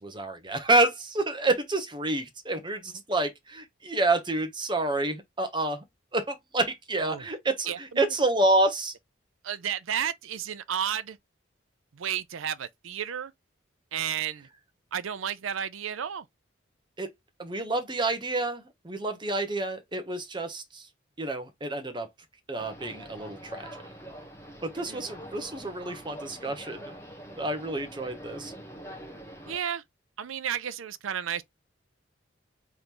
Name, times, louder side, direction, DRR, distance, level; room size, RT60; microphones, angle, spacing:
voice 1, 0.0-5.8 6.1-8.9 17.0-17.1 17.4-20.9 21.2-22.1 22.5-23.8 24.6-27.0 27.4-28.5, right 2 dB, 25° right, 0.8 m, -28 dB
voice 2, 7.7-8.1 9.4-11.2 11.9-13.3 13.9-14.5 14.9-16.3 24.9-25.0 29.5-29.8 30.2-31.4, right 9 dB, 85° right, 0.5 m, -32 dB
sound 1, 22.6-29.6, equal, 15° left, 1.0 m, -44 dB
3.9 x 3.3 x 2.9 m
head